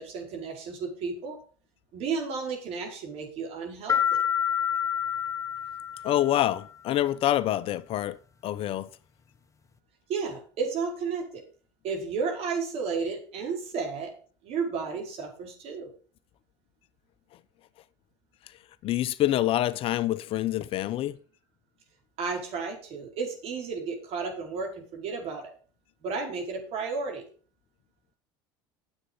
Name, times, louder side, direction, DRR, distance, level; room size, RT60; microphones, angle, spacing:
voice 1, 0.0-1.4 1.9-4.2 10.1-11.4 11.8-14.1 14.4-15.9 22.2-25.5 26.0-27.2, right 5 dB, 55° right, 4.9 m, -33 dB
sound 1, 3.9-6.5, left 9 dB, 25° left, 1.1 m, -28 dB
voice 2, 6.0-8.2 8.4-8.9 18.8-21.2, left 13 dB, 50° left, 0.7 m, -26 dB
9.9 x 8.1 x 5.6 m
hypercardioid pair, 80°, 12 cm